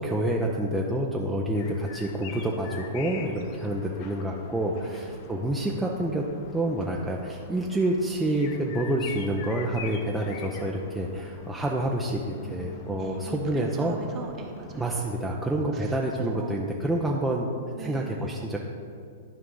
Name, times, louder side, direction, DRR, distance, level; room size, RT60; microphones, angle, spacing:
voice 1, 0.0-6.2 6.5-13.9 14.7-17.6 17.8-18.6, right 1 dB, 5° right, -2 dB, 0.7 m, -28 dB
sound 1, 1.5-15.1, left 6 dB, 45° left, 0.7 m, -45 dB
voice 2, 4.8-5.1 12.4-15.0 15.7-16.6 17.7-18.3, right 4 dB, 30° right, 2 dB, 1.1 m, -40 dB
12.5 x 4.9 x 3.8 m, 2.3 s
hypercardioid pair, 115°, 0 cm